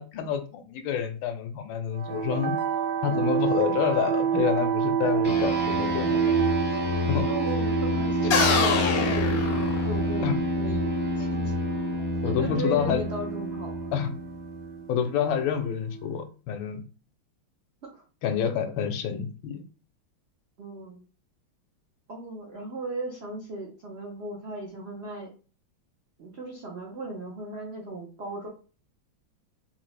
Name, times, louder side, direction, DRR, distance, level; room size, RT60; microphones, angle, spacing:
voice 1, 0.0-2.5 3.0-6.2 7.1-7.3 8.2-8.3 10.2-10.3 12.2-13.0 13.9-14.1 14.9-16.8 18.2-19.6, left 8 dB, 80° left, 7 dB, 1.3 m, -28 dB
sound 1, 1.9-16.0, right 8 dB, 70° right, 1.0 m, -29 dB
sound 2, 5.2-15.0, left 2 dB, 10° right, 0.4 m, -29 dB
voice 2, 7.0-11.5 12.2-13.9 17.9-18.0 20.6-21.0 22.1-25.3 26.2-28.5, right 2 dB, 85° right, -2 dB, 0.5 m, -37 dB
sound 3, 8.3-10.2, left 5 dB, 60° left, 1.0 m, -25 dB
3.8 x 2.7 x 3.2 m, 0.36 s
omnidirectional pair, 2.2 m